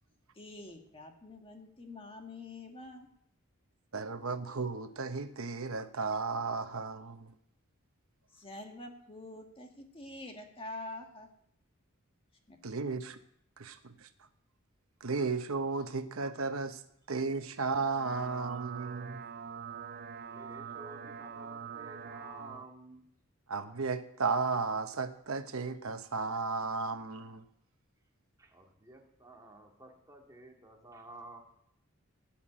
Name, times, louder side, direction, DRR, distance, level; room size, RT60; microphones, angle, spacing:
voice 1, 0.4-3.1 8.3-11.3 12.5-12.6, left 2 dB, 25° left, 3 dB, 1.7 m, -46 dB
voice 2, 3.9-7.3 12.6-13.2 13.6-14.1 15.0-16.8 17.1-19.2 23.5-27.4, right 4 dB, 90° right, 9 dB, 1.0 m, -34 dB
sound 1, 17.7-22.6, right 7 dB, 50° right, 0.6 m, -44 dB
voice 3, 20.2-23.1 28.4-31.4, right 2 dB, 15° right, 0 dB, 2.1 m, -52 dB
16.0 x 6.0 x 8.6 m, 0.72 s
head